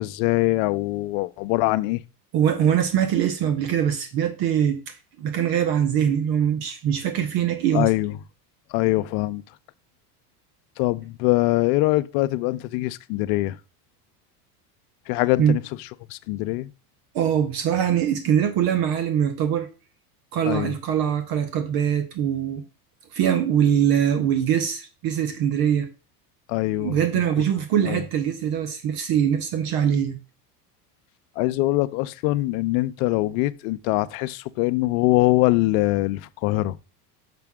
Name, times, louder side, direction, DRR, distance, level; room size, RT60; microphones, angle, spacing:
voice 1, 0.0-2.0 7.7-8.1 8.7-9.4 10.8-13.6 15.1-15.6 16.1-16.7 20.5-20.7 26.5-27.0 27.5-28.0 31.4-36.8, left 19 dB, 65° left, 0.6 m, -23 dB
voice 2, 2.3-7.9 15.4-15.6 17.1-19.7 20.3-22.6 23.1-25.9 26.8-30.2, right 9 dB, 50° right, 0.9 m, -22 dB
5.9 x 5.7 x 3.6 m
supercardioid pair, 105°, 47 cm